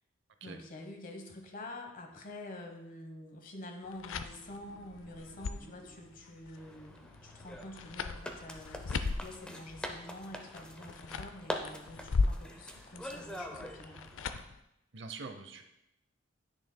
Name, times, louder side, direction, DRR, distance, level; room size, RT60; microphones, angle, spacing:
voice 1, 0.4-14.0, left 1 dB, 45° left, 4 dB, 1.0 m, -47 dB
sound 1, 3.9-14.6, left 4 dB, 75° left, 0.4 m, -38 dB
sound 2, 4.5-6.6, right 1 dB, 25° right, 1.8 m, -59 dB
sound 3, 6.6-14.4, left 1 dB, 5° left, 0.5 m, -44 dB
voice 2, 14.9-15.6, right 4 dB, 65° right, 7 dB, 0.6 m, -44 dB
10.0 x 6.3 x 2.2 m, 0.85 s
head